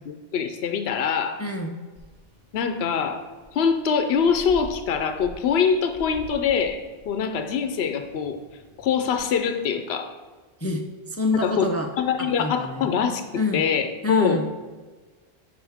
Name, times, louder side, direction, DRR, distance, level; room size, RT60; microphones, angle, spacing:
voice 1, 0.1-1.4 2.5-3.2 3.5-8.4 8.8-10.1 11.3-11.7 12.0-14.4, left 6 dB, 80° left, 7 dB, 0.9 m, -24 dB
voice 2, 1.4-1.8 10.6-11.9 12.2-12.9 13.4-13.6 14.0-14.4, left 2 dB, 20° left, 4 dB, 0.4 m, -27 dB
sound 1, 2.0-9.2, equal, 45° right, 1.8 m, -47 dB
11.0 x 4.7 x 3.5 m, 1.3 s
omnidirectional pair, 1.0 m